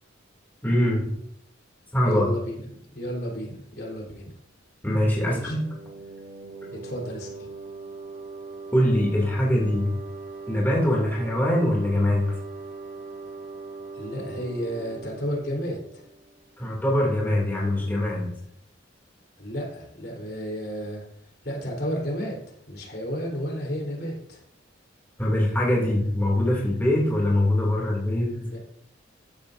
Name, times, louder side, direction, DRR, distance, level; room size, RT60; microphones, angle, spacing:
voice 1, 0.6-1.2 1.9-2.3 4.8-5.6 8.7-10.0 10.5-12.4 16.6-18.3 25.2-28.5, left 1 dB, 10° left, -4 dB, 2.5 m, -23 dB
voice 2, 2.1-4.3 5.2-5.6 6.8-7.5 13.9-16.0 19.4-21.0 21.4-22.4 22.7-24.4 28.5-28.6, equal, 55° left, -1 dB, 3.8 m, -32 dB
sound 1, 5.2-16.7, right 3 dB, 55° right, 1.4 m, -40 dB
14.0 x 10.5 x 2.6 m, 0.72 s
head